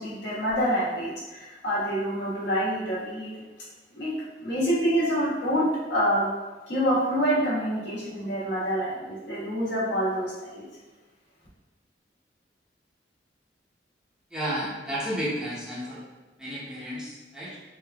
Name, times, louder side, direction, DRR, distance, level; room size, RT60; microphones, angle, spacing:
voice 1, 0.0-3.3 3.9-4.1 4.4-6.3 6.7-10.7, equal, 80° left, -9 dB, 1.3 m, -26 dB
voice 2, 14.3-16.0 16.4-17.6, equal, 5° right, -8 dB, 0.5 m, -32 dB
3.3 x 2.6 x 2.2 m, 1.2 s
head